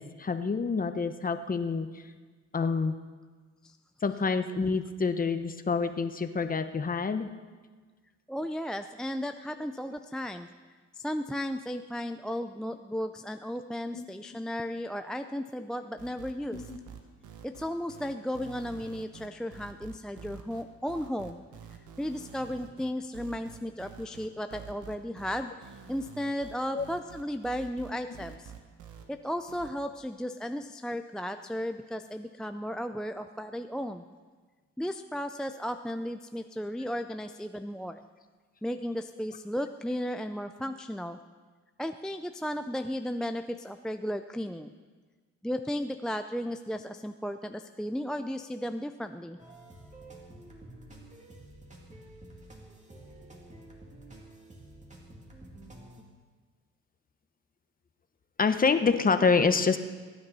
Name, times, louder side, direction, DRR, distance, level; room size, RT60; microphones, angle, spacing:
voice 1, 0.0-2.0 2.5-2.9 4.0-7.3 9.5-9.6 16.5-16.8 26.7-26.8 58.4-59.8, left 4 dB, 30° left, 9 dB, 0.9 m, -27 dB
voice 2, 8.3-10.5 10.9-16.7 17.4-21.4 22.0-28.5 29.1-34.0 34.8-38.0 38.6-41.2 41.8-44.7 45.4-49.4, equal, ahead, 7 dB, 0.4 m, -35 dB
sound 1, 16.0-29.0 29.5-29.7, right 7 dB, 80° right, 1.4 m, -48 dB
sound 2, 49.4-56.0, right 1 dB, 25° right, 2.4 m, -50 dB
21.0 x 9.7 x 4.1 m, 1.4 s
cardioid pair, 90°, 30 cm